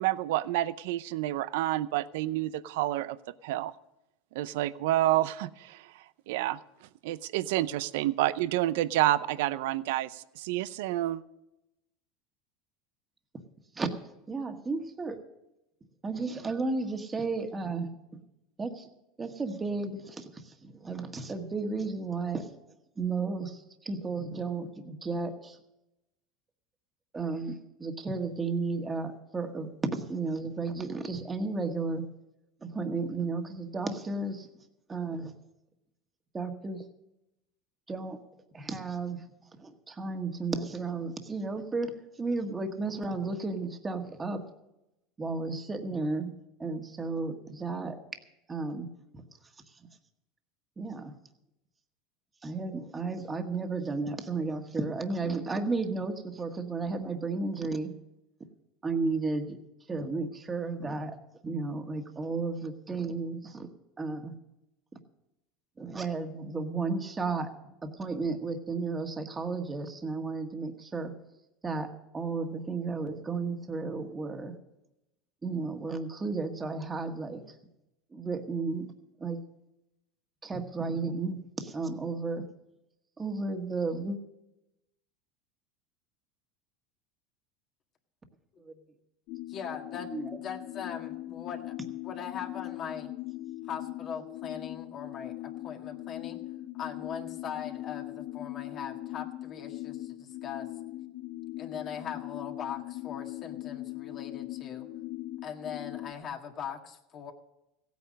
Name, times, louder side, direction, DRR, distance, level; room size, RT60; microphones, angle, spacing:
voice 1, 0.0-3.2 3.4-3.7 4.3-6.6 7.0-11.2, right 15 dB, 75° right, 17 dB, 0.6 m, -29 dB
voice 2, 14.3-15.2 16.0-18.2 18.6-18.9 19.2-22.5 23.0-25.6 27.1-32.0 32.6-34.5 34.9-35.3 36.3-36.9 37.9-38.2 38.5-39.2 39.6-41.9 42.2-44.4 45.2-46.3 46.6-48.0 48.5-49.2 50.8-51.1 52.4-57.9 58.8-59.6 59.9-61.2 61.4-63.7 64.0-64.3 65.8-71.1 71.6-74.5 75.4-77.6 78.1-78.9 79.2-79.4 80.4-82.4 83.2-84.2 88.6-88.7 90.1-90.4, right 3 dB, 20° right, 5 dB, 1.7 m, -33 dB
sound 1, 89.3-106.1, left 16 dB, 60° left, 0.9 m, -40 dB
voice 3, 89.5-90.1 90.4-93.1 93.6-96.4 96.7-100.7 101.6-104.9 105.4-107.3, left 7 dB, 45° left, 3 dB, 1.7 m, -40 dB
16.0 x 9.4 x 6.4 m, 0.90 s
supercardioid pair, 110°, 0 cm